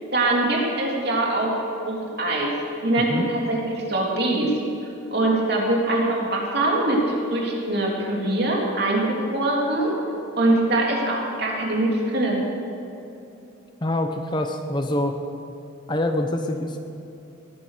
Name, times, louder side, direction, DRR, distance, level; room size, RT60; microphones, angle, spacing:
voice 1, 0.1-2.6 2.8-4.5 5.1-10.0 10.4-12.4, right 2 dB, 50° right, -2 dB, 3.3 m, -23 dB
voice 2, 13.8-15.2 15.9-16.8, left 1 dB, 20° left, 5 dB, 0.7 m, -25 dB
19.5 x 9.8 x 6.7 m, 2.9 s
head